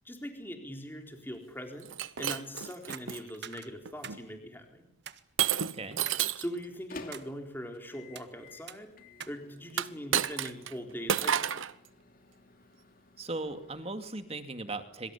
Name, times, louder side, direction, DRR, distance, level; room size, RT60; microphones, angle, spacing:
voice 1, 0.0-1.9 2.2-4.9 6.4-8.9 9.3-11.5, equal, 10° left, 4 dB, 4.0 m, -41 dB
Shatter, 1.8-3.2 3.9-4.2 5.4-6.5 9.7-10.7 11.1-11.7, right 9 dB, 70° right, 1.0 m, -30 dB
sound 1, 2.2-2.4 2.9-4.2 4.6-4.7 5.1-5.2 6.1-6.3 6.7-7.3 7.9-8.3 8.7-9.4 9.6-9.7 10.2-10.4, right 8 dB, 55° right, 1.6 m, -45 dB
voice 2, 5.6-6.0 13.2-15.1, right 2 dB, 30° right, 8 dB, 2.4 m, -38 dB
Microwave oven, 5.7-13.9, left 2 dB, 45° left, 2.8 m, -53 dB
26.0 x 24.0 x 8.5 m, 0.74 s
head